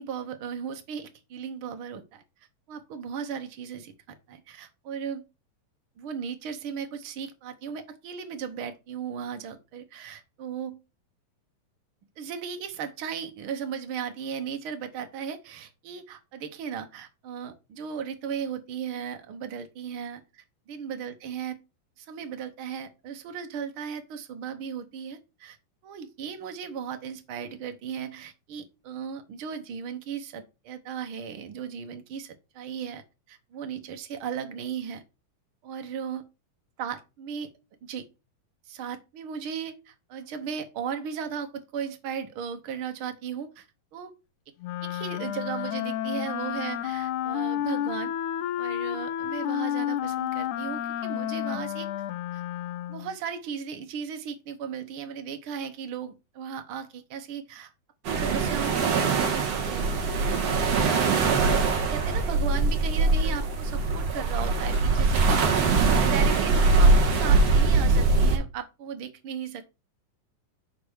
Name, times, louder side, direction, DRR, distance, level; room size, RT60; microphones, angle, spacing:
voice 1, 0.0-2.2 2.7-5.2 6.0-10.8 12.2-21.6 22.0-25.6 25.8-35.0 35.6-36.2 36.8-37.5 37.8-38.0 38.7-43.7 43.9-44.1 44.8-48.1 48.6-51.9 52.3-52.4 52.9-57.7 58.1-61.3 61.9-69.6, right 7 dB, 85° right, 7 dB, 1.1 m, -36 dB
Wind instrument woodwind instrument, 44.6-53.2, left 11 dB, 75° left, 1.9 m, -31 dB
sound 1, 58.0-68.4, right 3 dB, 50° right, 2.6 m, -22 dB
9.9 x 3.4 x 6.3 m, 0.28 s
omnidirectional pair, 4.1 m